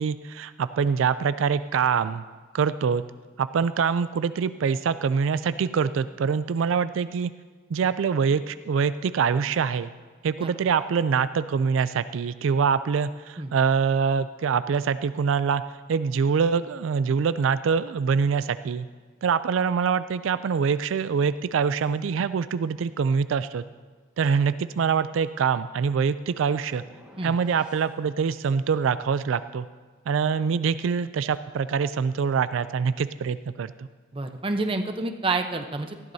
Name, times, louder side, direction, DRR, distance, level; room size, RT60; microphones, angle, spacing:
voice 1, 0.0-2.2 2.5-3.0 3.4-7.3 7.7-9.9 10.2-15.6 15.9-18.9 19.2-23.6 24.2-26.8 27.2-29.7 30.1-33.9, right 6 dB, 85° right, 13 dB, 0.4 m, -24 dB
sound 1, 26.7-27.9, equal, 5° right, 1.6 m, -51 dB
voice 2, 34.1-36.1, right 3 dB, 25° right, 6 dB, 0.8 m, -29 dB
19.0 x 13.5 x 2.7 m, 1.4 s
head